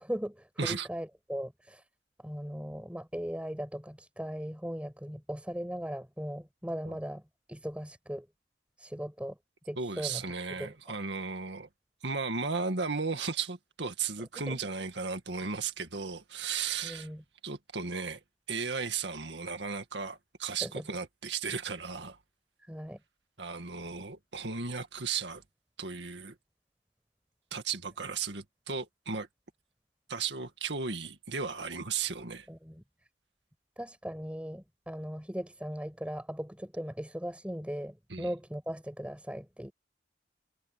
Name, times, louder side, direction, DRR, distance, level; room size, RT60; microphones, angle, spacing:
voice 1, 0.0-1.8 2.2-7.2 7.5-8.3 8.8-9.4 9.7-10.2 10.6-10.7 14.5-14.6 16.8-17.2 20.6-20.8 22.7-23.0 32.5-32.8 33.8-39.7, equal, 5° right, 6.4 m, -38 dB
voice 2, 9.8-11.7 12.0-17.1 17.4-18.2 18.5-22.2 23.4-25.4 25.8-26.3 27.5-29.3 30.1-32.5 38.1-38.3, right 5 dB, 75° right, 2.1 m, -35 dB
head